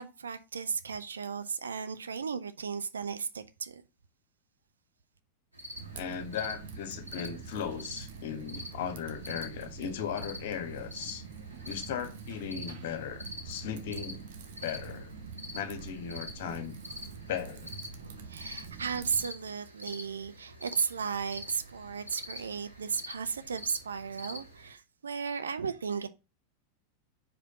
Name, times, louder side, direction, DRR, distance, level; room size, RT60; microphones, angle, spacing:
voice 1, 0.0-3.8 18.0-26.1, right 6 dB, 70° right, 0.6 m, -35 dB
sound 1, 5.5-24.7, left 1 dB, 85° right, 2.8 m, -46 dB
Typing, 5.7-19.3, right 5 dB, 55° right, 1.0 m, -45 dB
voice 2, 5.9-11.2 11.6-14.2 14.6-15.1 15.5-16.8 17.3-17.7, left 8 dB, 55° left, 1.2 m, -37 dB
4.9 x 4.5 x 5.6 m
figure-of-eight pair, 90°, 0 cm